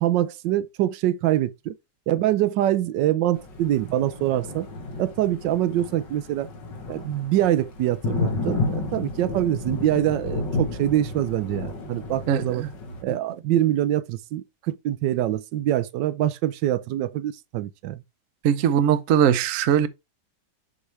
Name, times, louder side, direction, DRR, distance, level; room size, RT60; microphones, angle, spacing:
voice 1, 0.0-1.7 2.1-4.7 5.0-6.5 6.9-12.6 13.0-18.0, right 13 dB, 90° right, 1.3 m, -24 dB
Thunder, 3.3-13.0, left 3 dB, 85° left, 2.2 m, -32 dB
voice 2, 12.3-12.7 18.4-19.9, right 9 dB, 60° right, 0.9 m, -20 dB
7.5 x 4.8 x 3.2 m
omnidirectional pair, 1.9 m